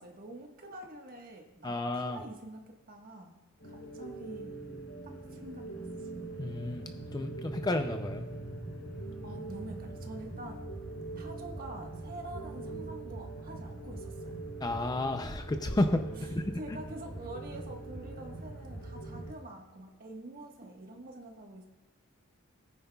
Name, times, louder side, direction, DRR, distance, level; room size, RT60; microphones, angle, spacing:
voice 1, 0.0-3.3 3.6-4.5 5.0-6.1 9.2-10.6 11.1-14.4 16.2-16.3 16.5-21.7, right 1 dB, 40° right, 1 dB, 1.4 m, -46 dB
voice 2, 1.6-2.2 6.4-8.2 14.6-16.8, left 2 dB, 20° left, 6 dB, 0.4 m, -32 dB
sound 1, 3.6-19.3, right 2 dB, 60° left, 3.2 m, -42 dB
18.5 x 9.3 x 2.3 m, 1.1 s
head